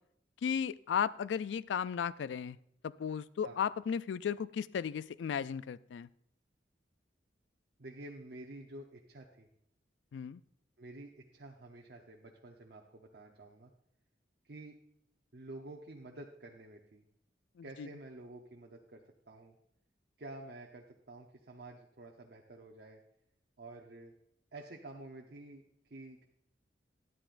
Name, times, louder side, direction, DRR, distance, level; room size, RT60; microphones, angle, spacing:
voice 1, 0.4-2.6 2.8-6.1 10.1-10.4 17.6-17.9, left 7 dB, 85° left, 18 dB, 0.3 m, -35 dB
voice 2, 7.8-9.5 10.8-13.7 14.4-14.8 15.3-17.0 17.6-19.6 20.2-23.0 23.6-24.1 24.5-26.3, right 2 dB, 60° right, 0 dB, 0.8 m, -50 dB
13.0 x 11.0 x 2.5 m, 0.73 s
head